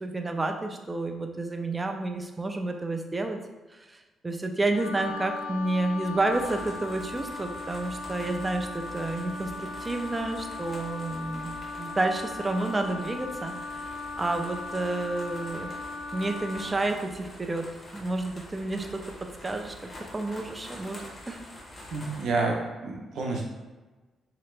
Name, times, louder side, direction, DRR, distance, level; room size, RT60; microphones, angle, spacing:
voice 1, 0.0-3.4 4.2-11.5 11.8-13.5 14.2-15.7 16.1-17.6 17.9-19.0 19.4-21.4, right 2 dB, 15° right, 4 dB, 0.3 m, -30 dB
Wind instrument woodwind instrument, 4.7-16.8, left 3 dB, 90° left, 0.3 m, -38 dB
sound 1, 6.3-22.3, left 1 dB, 25° left, 0.6 m, -46 dB
voice 2, 21.9-23.4, right 3 dB, 60° right, 0 dB, 0.7 m, -29 dB
3.3 x 2.9 x 3.2 m, 1.2 s
cardioid pair, 170°, 0 cm